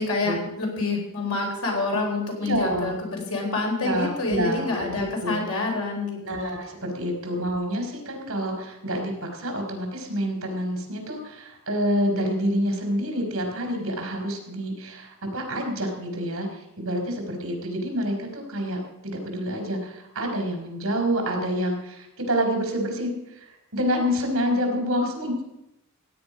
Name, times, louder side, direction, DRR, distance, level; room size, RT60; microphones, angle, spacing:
voice 1, 0.0-6.5, left 3 dB, 80° left, 0 dB, 4.1 m, -27 dB
voice 2, 2.4-2.9 3.8-5.4 6.2-16.5 16.8-23.1 23.7-25.4, equal, 70° right, 3 dB, 3.6 m, -27 dB
16.0 x 9.6 x 5.1 m, 0.87 s
head